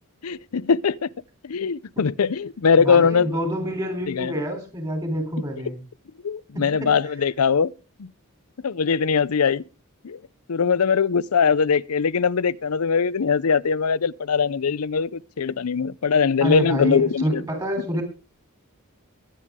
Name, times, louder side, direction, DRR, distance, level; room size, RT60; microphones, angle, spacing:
voice 1, 0.2-1.1 1.4-3.4 4.1-4.3 6.2-7.7 8.0-8.1 8.6-9.6 10.0-10.2 10.5-17.4, left 6 dB, 90° left, 0.6 m, -21 dB
voice 2, 2.8-5.8 6.5-6.9 16.4-18.0, equal, 20° right, 3.5 m, -27 dB
22.0 x 8.4 x 3.6 m
head